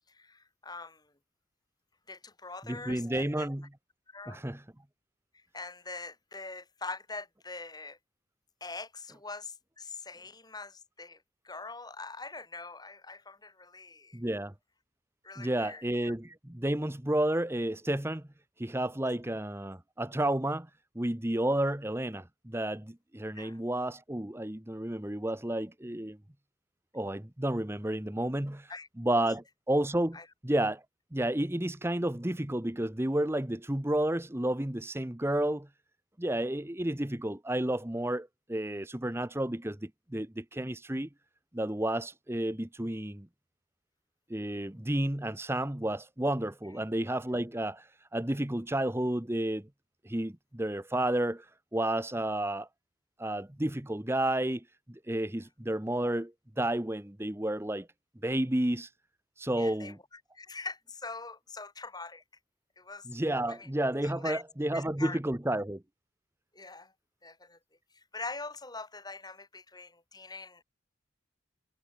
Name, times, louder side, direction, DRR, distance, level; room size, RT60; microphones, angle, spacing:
voice 1, 0.1-1.1 2.1-3.5 4.1-4.4 5.3-8.0 8.6-14.2 15.2-15.8 23.4-23.6 28.7-28.9 29.2-29.3 30.1-30.3 59.6-62.2 62.8-63.1 63.5-63.7 64.0-64.4 64.7-65.2 66.5-66.9 67.2-67.6 67.9-70.6, left 3 dB, 20° left, 5.6 m, -43 dB
voice 2, 2.7-3.7 4.3-4.6 14.1-14.5 15.4-18.2 18.6-20.7 20.9-26.2 26.9-28.7 29.0-30.8 31.1-35.7 36.2-41.1 41.5-43.3 44.3-49.7 50.0-52.7 53.2-57.9 58.2-58.9 59.4-60.0 63.1-65.8, right 1 dB, 10° right, 0.9 m, -31 dB
head